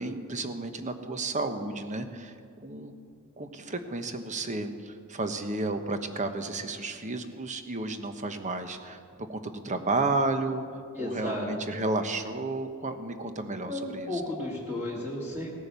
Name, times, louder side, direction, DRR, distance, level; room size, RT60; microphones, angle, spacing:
voice 1, 0.0-2.3 2.6-2.9 3.4-10.7 11.0-14.1, right 2 dB, 35° right, 8 dB, 1.1 m, -32 dB
voice 2, 10.9-11.5 13.7-15.6, left 1 dB, 10° right, -5 dB, 2.0 m, -33 dB
17.5 x 9.6 x 6.9 m, 2.4 s
head